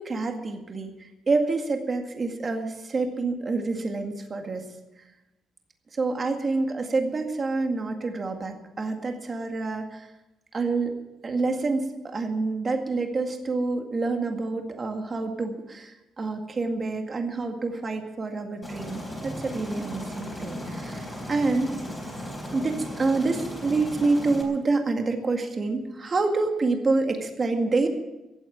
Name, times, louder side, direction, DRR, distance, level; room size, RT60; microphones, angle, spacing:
voice 1, 0.0-4.7 5.9-10.1 10.5-10.9 11.2-21.8 22.5-27.9, right 3 dB, 30° right, 4 dB, 1.9 m, -27 dB
Aircraft, 18.6-24.4, equal, 5° left, 3.8 m, -36 dB
15.5 x 8.9 x 9.2 m, 1.0 s
cardioid pair, 135°, 0 cm